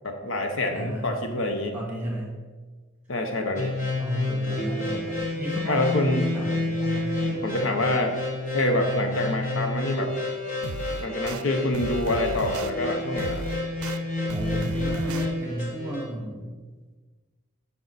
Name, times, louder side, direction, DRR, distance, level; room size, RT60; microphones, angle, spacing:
voice 1, 0.0-1.7 3.1-3.7 5.7-6.2 7.4-8.2 8.5-10.1 11.0-13.5, left 1 dB, 65° left, 5 dB, 0.8 m, -26 dB
voice 2, 0.7-1.1 1.7-2.3 4.0-7.4 14.3-16.5, right 1 dB, 10° right, -2 dB, 1.9 m, -34 dB
sound 1, 3.6-16.1, left 2 dB, 35° left, 1.2 m, -29 dB
sound 2, 10.6-11.4 11.7-12.7 13.2-14.0 14.3-15.3, right 3 dB, 90° right, 0.5 m, -34 dB
9.1 x 5.8 x 4.1 m, 1.3 s
head